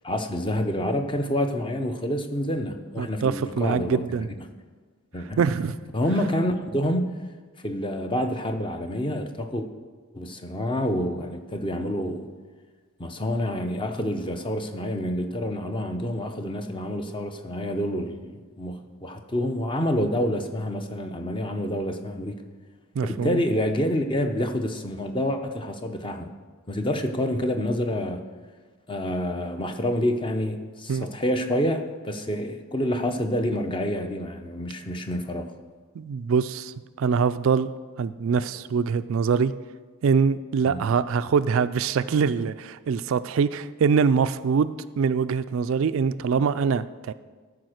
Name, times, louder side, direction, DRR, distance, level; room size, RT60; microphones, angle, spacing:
voice 1, 0.0-4.0 4.4-4.5 5.1-5.4 5.9-7.1 7.6-9.7 10.1-12.3 13.0-22.4 23.0-26.3 26.7-28.2 28.9-35.5 40.6-40.8, equal, 20° left, 6 dB, 0.7 m, -28 dB
voice 2, 3.0-4.3 5.4-5.8 23.0-23.4 30.9-31.0 36.0-37.7 38.0-39.5 40.0-47.1, right 6 dB, 65° right, 13 dB, 0.3 m, -24 dB
13.5 x 5.0 x 6.4 m, 1.4 s
head